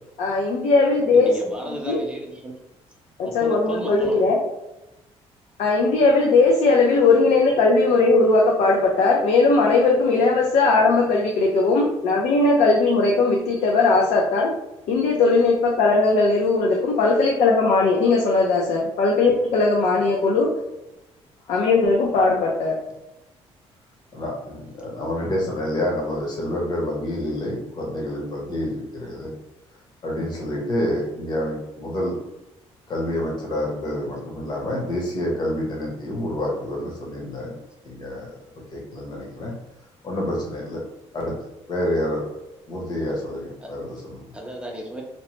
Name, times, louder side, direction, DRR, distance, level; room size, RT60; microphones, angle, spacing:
voice 1, 0.2-1.3 1.7-2.0 3.2-4.4 5.6-14.5 14.9-20.5 21.5-22.7, left 3 dB, 70° left, -2 dB, 0.5 m, -18 dB
voice 2, 1.1-2.5 3.2-4.2 25.2-25.3 43.6-43.7 44.3-45.0, right 1 dB, 10° right, -1 dB, 0.4 m, -34 dB
voice 3, 24.1-29.3 30.0-32.2 32.9-37.5 37.8-38.3 38.7-39.5 40.0-40.8 41.1-41.4 41.7-42.2 42.7-44.2, left 1 dB, 40° left, -2 dB, 0.8 m, -28 dB
2.9 x 2.1 x 2.9 m, 0.95 s
cardioid pair, 160°, 11 cm